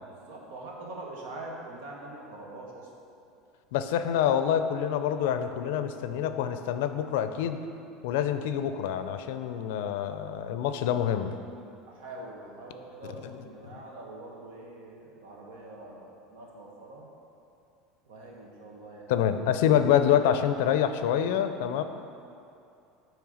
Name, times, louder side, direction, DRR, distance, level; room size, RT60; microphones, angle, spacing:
voice 1, 0.0-2.9 11.9-17.1 18.0-19.1, right 2 dB, 75° right, -2 dB, 1.4 m, -44 dB
voice 2, 3.7-7.6 8.0-11.3 13.2-13.3 13.7-13.8 19.1-21.8, left 9 dB, 80° left, 9 dB, 0.4 m, -26 dB
8.6 x 3.2 x 6.3 m, 2.6 s
cardioid pair, 155°, 0 cm